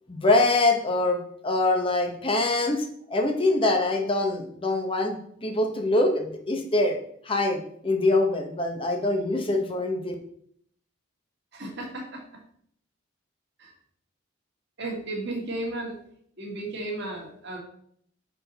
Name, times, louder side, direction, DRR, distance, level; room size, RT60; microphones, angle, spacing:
voice 1, 0.1-2.8 3.1-7.0 7.2-10.1, left 2 dB, 25° left, 4 dB, 0.9 m, -24 dB
voice 2, 11.5-12.2 13.6-13.7 14.8-16.0 16.4-17.6, right 2 dB, 55° right, 0 dB, 1.7 m, -34 dB
6.0 x 4.6 x 4.0 m, 0.65 s
head